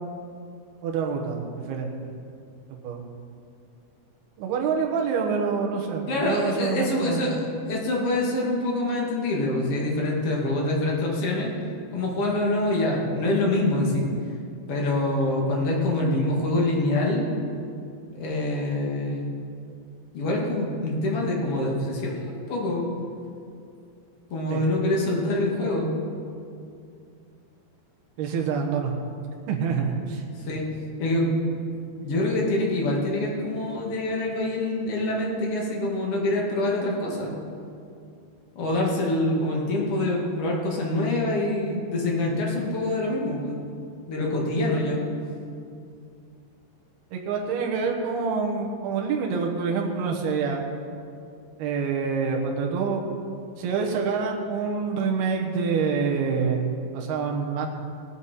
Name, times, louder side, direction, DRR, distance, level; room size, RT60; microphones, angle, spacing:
voice 1, 0.8-2.1 2.8-3.0 4.4-7.4 24.5-24.6 28.2-28.9 29.5-30.2 47.1-50.6 51.6-53.0 53.6-57.8, right 5 dB, 70° right, 1 dB, 3.0 m, -26 dB
voice 2, 6.1-11.5 11.9-14.1 14.7-17.3 18.1-19.3 20.1-22.8 24.3-25.9 30.4-30.6 31.0-31.3 32.0-37.3 38.5-43.6 44.1-45.0, left 1 dB, 55° left, -2 dB, 1.7 m, -25 dB
18.0 x 9.4 x 4.2 m, 2.5 s
omnidirectional pair, 5.3 m